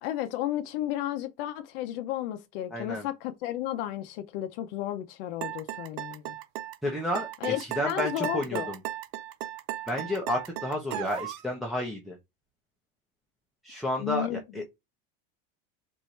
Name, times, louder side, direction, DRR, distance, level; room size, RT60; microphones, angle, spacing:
voice 1, 0.0-6.4 7.4-8.7 14.0-14.4, left 12 dB, 70° left, 0.6 m, -33 dB
voice 2, 2.7-3.1 6.8-8.8 9.9-12.2 13.6-14.3 14.5-14.6, left 1 dB, ahead, 0.6 m, -31 dB
sound 1, 5.4-11.5, right 13 dB, 55° right, 0.4 m, -36 dB
4.4 x 2.6 x 3.1 m
supercardioid pair, 150°, 30 cm